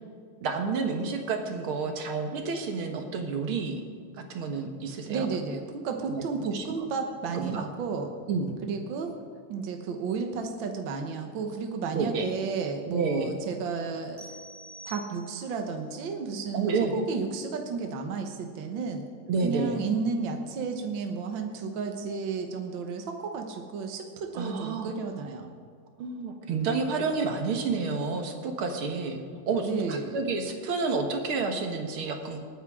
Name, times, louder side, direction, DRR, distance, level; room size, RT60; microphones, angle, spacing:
voice 1, 0.4-3.8 4.3-5.3 6.1-6.6 7.3-7.6 8.3-8.6 11.9-12.3 12.9-13.3 16.5-17.0 19.3-19.8 24.3-24.9 26.0-29.2 29.5-32.4, right 4 dB, 85° right, 4 dB, 2.2 m, -30 dB
voice 2, 5.1-8.1 8.6-9.1 9.5-14.2 14.9-19.0 19.4-25.6 29.6-30.2, right 5 dB, 70° right, 4 dB, 1.9 m, -32 dB
sound 1, 14.2-15.7, right 1 dB, 30° right, 0.4 m, -47 dB
27.0 x 9.8 x 3.7 m, 2.1 s
omnidirectional pair, 2.3 m